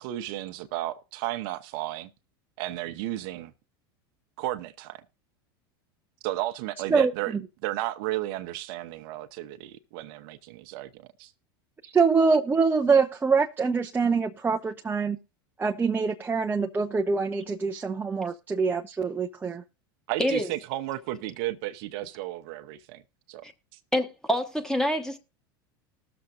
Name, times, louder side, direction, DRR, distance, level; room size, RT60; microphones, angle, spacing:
voice 1, 0.0-2.1 2.6-3.5 4.4-5.0 6.2-7.3 7.6-11.3 20.1-23.0 23.3-23.4, right 15 dB, 65° right, 0.8 m, -33 dB
voice 2, 11.8-15.2 15.6-19.6, right 5 dB, 15° right, 0.7 m, -24 dB
voice 3, 23.9-25.2, equal, 5° left, 1.3 m, -26 dB
19.5 x 7.0 x 2.5 m
hypercardioid pair, 105°, 12 cm